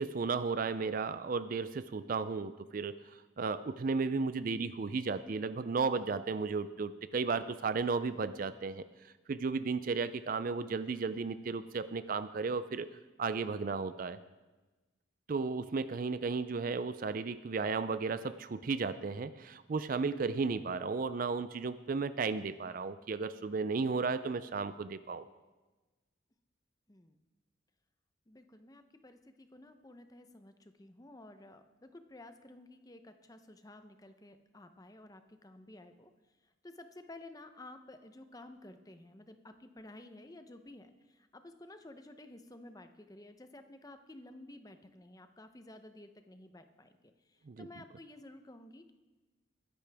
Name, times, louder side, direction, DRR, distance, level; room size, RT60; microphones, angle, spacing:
voice 1, 0.0-2.9 3.4-8.8 9.3-12.9 13.2-14.2 15.3-25.3 47.5-47.7, right 4 dB, 45° right, 13 dB, 0.4 m, -34 dB
voice 2, 28.3-36.1 36.6-48.9, left 1 dB, 20° left, 8 dB, 0.7 m, -53 dB
21.0 x 10.5 x 3.5 m, 1.2 s
head